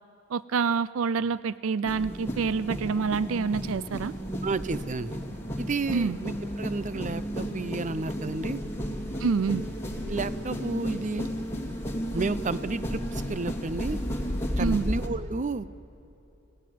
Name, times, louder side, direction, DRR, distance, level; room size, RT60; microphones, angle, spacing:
voice 1, 0.3-4.1 5.9-6.2 9.2-9.6 14.6-14.9, right 5 dB, 80° right, 18 dB, 0.4 m, -27 dB
sound 1, 1.9-15.1, equal, 15° left, 2.5 m, -33 dB
voice 2, 4.4-5.2 5.6-8.6 10.1-11.3 12.1-14.0 14.6-15.7, right 3 dB, 35° right, 15 dB, 0.6 m, -31 dB
29.0 x 16.5 x 9.4 m, 2.9 s
head